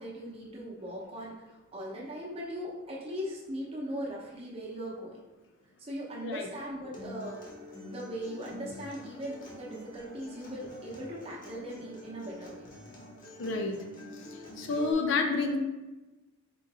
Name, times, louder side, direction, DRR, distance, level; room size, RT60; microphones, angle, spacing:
voice 1, 0.0-5.2 5.8-7.4 7.9-12.6, equal, 25° right, -4 dB, 0.8 m, -39 dB
Acoustic guitar, 6.9-14.9, left 1 dB, 40° left, 0.8 m, -47 dB
voice 2, 13.4-13.8 14.6-15.6, left 3 dB, 60° left, 4 dB, 0.4 m, -29 dB
3.8 x 2.5 x 4.1 m, 1.1 s
head